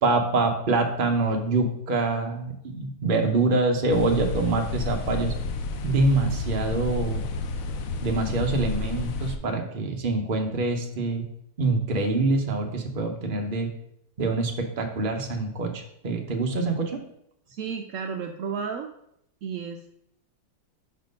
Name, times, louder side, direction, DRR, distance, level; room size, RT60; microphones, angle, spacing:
voice 1, 0.0-5.3 5.8-7.3 8.0-11.3 11.6-13.7 14.2-17.0, right 3 dB, 40° right, 3 dB, 0.8 m, -25 dB
sound 1, 3.9-9.4, left 3 dB, 65° left, 0.9 m, -31 dB
voice 2, 17.5-18.9 19.4-19.9, right 6 dB, 80° right, 4 dB, 0.7 m, -32 dB
5.8 x 4.4 x 5.2 m, 0.74 s
omnidirectional pair, 1.9 m